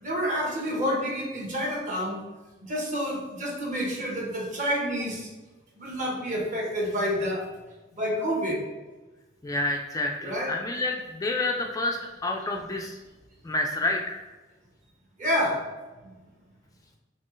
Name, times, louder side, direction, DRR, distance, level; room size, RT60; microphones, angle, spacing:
voice 1, 0.0-2.2 2.7-5.3 5.8-7.4 7.9-8.6 10.2-10.5 15.2-15.6, equal, 40° right, -2 dB, 1.2 m, -28 dB
voice 2, 9.4-13.0 13.4-14.2, left 2 dB, 20° left, 1 dB, 0.3 m, -29 dB
4.3 x 3.8 x 3.1 m, 1.2 s
head